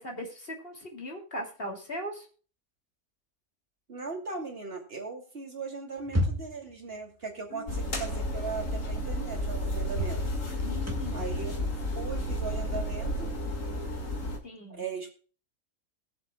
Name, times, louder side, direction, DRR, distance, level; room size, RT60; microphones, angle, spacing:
voice 1, 0.0-2.3 7.5-7.8 10.6-11.3 14.4-14.9, equal, 45° left, 2 dB, 2.9 m, -39 dB
voice 2, 3.9-10.2 11.1-11.5 12.0-13.3 14.8-15.1, right 4 dB, 45° right, 1 dB, 2.8 m, -38 dB
sound 1, 6.0-6.8 8.5-8.6 9.1-9.2 9.9-13.5, left 1 dB, 10° right, 1.8 m, -34 dB
sound 2, 7.7-14.4, equal, 65° left, 2.3 m, -32 dB
20.5 x 7.5 x 2.2 m, 0.39 s
omnidirectional pair, 1.4 m